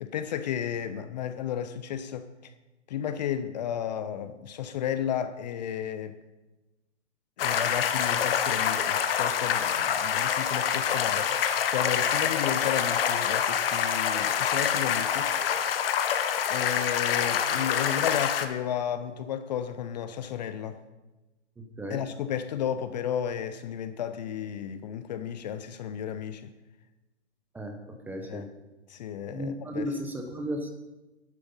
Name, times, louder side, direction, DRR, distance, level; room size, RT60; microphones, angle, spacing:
voice 1, 0.0-2.5 2.9-6.1 7.4-15.3 15.6-15.8 16.5-20.8 21.9-26.5 28.2-28.5 28.9-29.9, left 9 dB, 35° left, 11 dB, 0.7 m, -33 dB
sound 1, 7.4-18.5, left 8 dB, 50° left, 1.3 m, -26 dB
voice 2, 21.6-22.0 27.5-28.4 29.3-30.7, equal, 5° right, 4 dB, 0.8 m, -35 dB
11.0 x 9.4 x 5.5 m, 1.1 s
hypercardioid pair, 145°, 35 cm